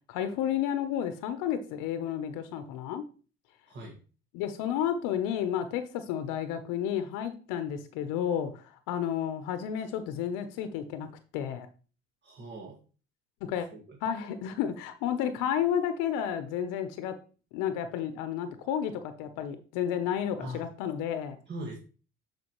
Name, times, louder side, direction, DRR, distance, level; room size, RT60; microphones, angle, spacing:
voice 1, 0.1-3.0 4.3-11.7 13.4-13.7 14.0-17.2 17.5-21.4, left 9 dB, 80° left, 9 dB, 0.9 m, -31 dB
voice 2, 3.7-4.0 12.2-12.8 13.5-14.0 20.4-20.6 21.5-21.8, right 1 dB, 35° right, 0 dB, 1.9 m, -41 dB
9.4 x 5.0 x 3.1 m, 0.37 s
cardioid pair, 110°, 31 cm